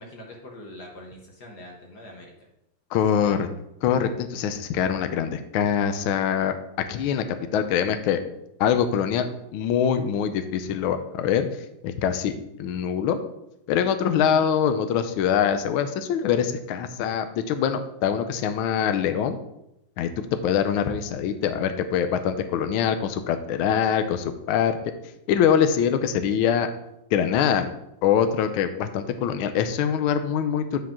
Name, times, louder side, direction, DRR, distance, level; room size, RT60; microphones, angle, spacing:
voice 1, 0.0-2.5 3.2-3.4, left 1 dB, 55° left, 0 dB, 1.5 m, -44 dB
voice 2, 2.9-3.5 3.8-8.2 8.6-11.5 11.8-12.3 12.6-13.2 13.7-19.4 20.0-24.8 25.3-26.7 27.1-27.7 28.0-30.8, left 8 dB, 80° left, 9 dB, 1.4 m, -24 dB
9.0 x 4.8 x 3.6 m, 0.85 s
omnidirectional pair, 2.3 m